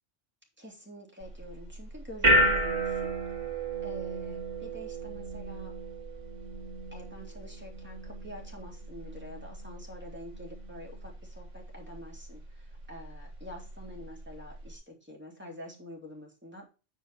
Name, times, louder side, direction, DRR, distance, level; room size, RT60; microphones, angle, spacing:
voice 1, 0.6-3.1 3.8-5.7 6.9-16.7, equal, 10° right, -1 dB, 2.9 m, -47 dB
sound 1, 1.2-14.7, right 1 dB, 35° right, 2.4 m, -33 dB
9.2 x 5.4 x 4.1 m, 0.31 s
omnidirectional pair, 1.2 m